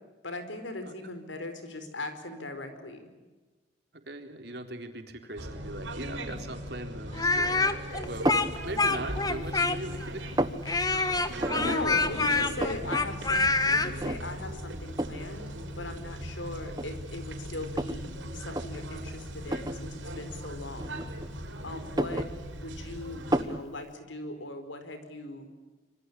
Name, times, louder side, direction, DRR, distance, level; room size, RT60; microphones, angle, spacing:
voice 1, 0.2-3.1 11.5-15.4 15.8-21.0 21.6-22.3 22.6-25.5, left 2 dB, 80° left, 9 dB, 5.0 m, -39 dB
voice 2, 3.9-8.3 8.6-10.3 11.3-12.8 22.2-22.3, right 1 dB, 55° right, 5 dB, 3.9 m, -40 dB
sound 1, 5.3-23.4, equal, 80° right, 5.7 m, -39 dB
Speech, 7.1-10.0 10.7-13.9, left 3 dB, 20° left, 1.5 m, -26 dB
sound 2, 8.3-8.6 9.1-9.8 10.0-10.6 11.4-11.8 12.1-12.2 12.4-13.0 13.4-13.5 14.0-14.5 15.0-15.3 16.1-16.2 16.7-18.0 18.4-18.7 19.5-19.8 20.8-21.4 21.8-22.8 23.3-23.6, right 1 dB, 20° right, 1.1 m, -31 dB
26.5 x 24.5 x 8.4 m, 1.2 s
head